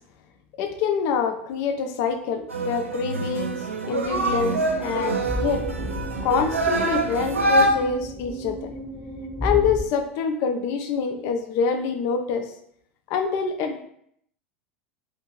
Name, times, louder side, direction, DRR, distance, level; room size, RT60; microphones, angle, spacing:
voice 1, 0.6-5.6 6.2-8.7 9.4-12.5 13.1-13.8, left 6 dB, 45° left, 5 dB, 0.4 m, -26 dB
sound 1, 2.5-7.7, right 2 dB, 85° right, 0.4 m, -25 dB
sound 2, 4.0-9.8, equal, 10° left, 0.8 m, -33 dB
2.6 x 2.5 x 2.9 m, 0.70 s
figure-of-eight pair, 80°, 7 cm